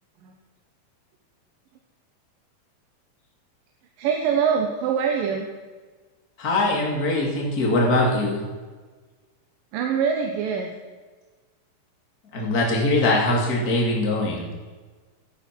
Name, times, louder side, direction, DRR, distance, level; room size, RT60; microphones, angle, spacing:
voice 1, 4.0-5.5 9.7-10.7, right 7 dB, 85° right, 2 dB, 2.9 m, -24 dB
voice 2, 6.4-8.4 12.3-14.5, left 2 dB, 30° left, -2 dB, 3.0 m, -22 dB
15.5 x 11.0 x 6.2 m, 1.4 s
omnidirectional pair, 3.8 m